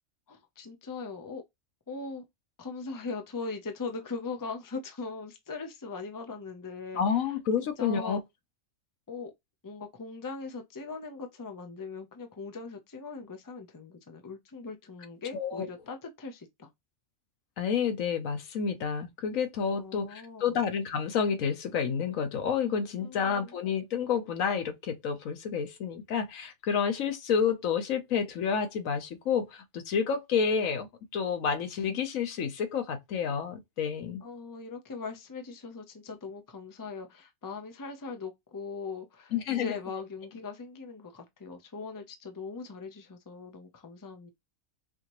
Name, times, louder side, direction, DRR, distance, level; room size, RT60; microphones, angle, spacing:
voice 1, 0.3-1.4 1.9-2.2 2.6-7.0 7.6-8.2 9.1-9.3 9.6-16.7 19.7-20.6 23.0-23.5 34.2-44.3, left 4 dB, 20° left, 0.6 m, -40 dB
voice 2, 6.9-8.2 15.3-15.6 17.6-30.9 31.1-34.2 39.3-39.8, left 6 dB, 85° left, 1.3 m, -29 dB
4.7 x 2.9 x 3.0 m
omnidirectional pair, 1.4 m